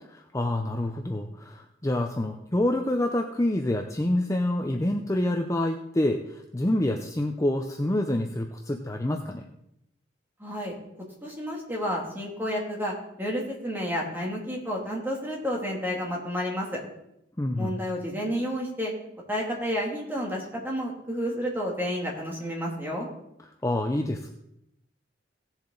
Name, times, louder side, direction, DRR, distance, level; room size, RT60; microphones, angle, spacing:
voice 1, 0.3-9.4 17.4-17.8 23.6-24.3, left 1 dB, 15° left, 3 dB, 0.6 m, -27 dB
voice 2, 10.4-10.7 11.2-16.8 17.5-18.9 19.3-23.1, equal, 10° right, -2 dB, 2.6 m, -30 dB
17.0 x 7.2 x 3.9 m, 0.80 s
head